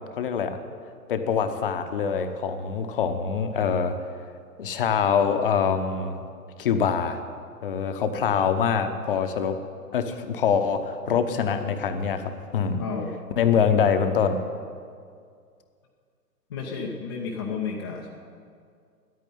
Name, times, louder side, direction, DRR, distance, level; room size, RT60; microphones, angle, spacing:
voice 1, 0.1-0.6 1.1-3.9 4.6-6.2 6.6-7.2 7.6-9.6 9.9-12.8 13.4-14.4, left 6 dB, 35° left, 8 dB, 0.9 m, -24 dB
voice 2, 12.8-13.1 16.5-18.1, left 5 dB, 15° left, -2 dB, 0.5 m, -32 dB
9.7 x 9.4 x 9.4 m, 2.2 s
figure-of-eight pair, 120°, 48 cm